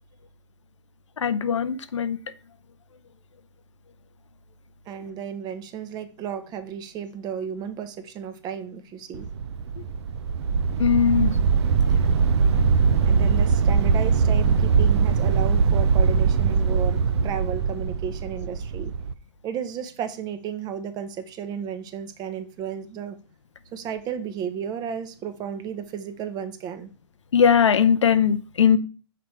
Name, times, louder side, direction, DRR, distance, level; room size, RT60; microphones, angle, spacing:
voice 1, 1.2-2.2 10.8-11.3 27.3-28.8, left 7 dB, 80° left, 14 dB, 0.6 m, -19 dB
voice 2, 4.9-9.3 13.0-18.9 19.4-23.2 23.7-26.9, right 8 dB, 25° right, 10 dB, 0.7 m, -33 dB
sound 1, 9.1-19.1, right 5 dB, 65° right, 0.5 m, -21 dB
6.1 x 4.1 x 4.5 m, 0.36 s
figure-of-eight pair, 115°, 15 cm